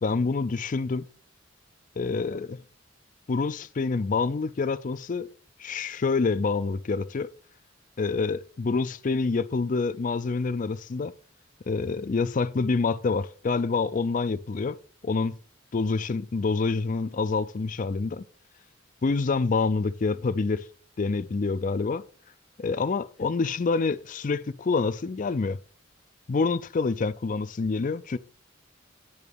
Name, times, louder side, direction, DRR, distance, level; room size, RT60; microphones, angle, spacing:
voice 1, 0.0-1.0 2.0-2.6 3.3-5.3 5.6-7.3 8.0-11.1 11.7-14.8 15.0-15.4 15.7-18.2 19.0-20.6 21.0-22.0 22.6-25.6 26.3-28.2, left 4 dB, 40° left, 0.4 m, -27 dB
10.5 x 3.9 x 6.9 m
head